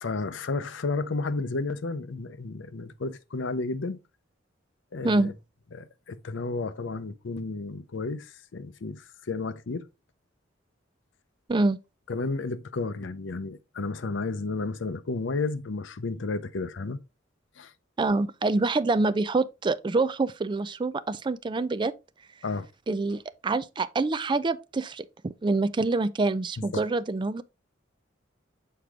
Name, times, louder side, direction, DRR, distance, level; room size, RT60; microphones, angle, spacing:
voice 1, 0.0-4.0 4.9-5.3 5.7-9.9 12.1-17.0 17.6-17.7 22.4-22.7 26.7-26.8, left 3 dB, 80° left, 0.6 m, -32 dB
voice 2, 18.0-21.9 22.9-27.4, right 3 dB, 25° right, 0.4 m, -26 dB
6.7 x 4.6 x 3.6 m
head